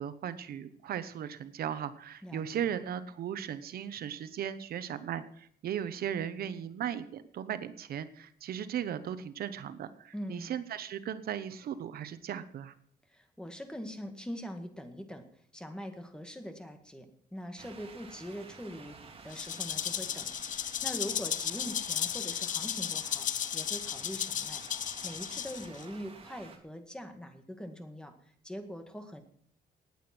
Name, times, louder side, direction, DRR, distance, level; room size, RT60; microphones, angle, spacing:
voice 1, 0.0-12.7, right 9 dB, 70° right, 12 dB, 1.0 m, -37 dB
voice 2, 2.2-2.7 10.1-10.5 13.1-15.2 15.5-19.0 19.2-23.3 23.5-28.1 28.4-29.2, equal, 5° left, 6 dB, 1.9 m, -43 dB
sound 1, 17.6-26.6, right 4 dB, 35° right, 2.3 m, -51 dB
Rattle (instrument), 19.3-25.8, left 9 dB, 50° left, 0.7 m, -34 dB
19.0 x 8.8 x 6.1 m, 0.63 s
cardioid pair, 150°, 16 cm